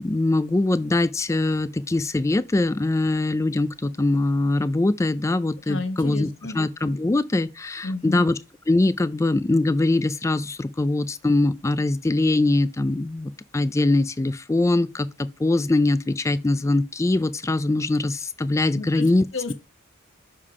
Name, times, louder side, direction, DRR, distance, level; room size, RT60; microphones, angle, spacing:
voice 1, 0.0-6.3 6.5-8.4 8.7-19.5, left 2 dB, 15° left, 0.3 m, -22 dB
voice 2, 5.7-6.6 7.8-8.3 18.7-19.5, left 3 dB, 65° left, 1.0 m, -31 dB
6.6 x 3.7 x 4.8 m
head